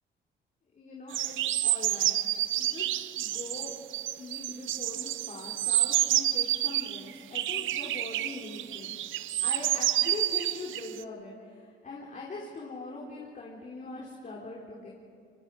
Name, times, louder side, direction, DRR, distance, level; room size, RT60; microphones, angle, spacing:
voice 1, 0.7-2.2 2.6-3.7 4.2-8.9 9.4-14.9, left 3 dB, 40° left, -4 dB, 4.0 m, -42 dB
sound 1, 1.1-7.0 7.4-11.0, right 13 dB, 80° right, 0.7 m, -29 dB
26.0 x 25.5 x 4.9 m, 2.3 s
cardioid pair, 90°, 20 cm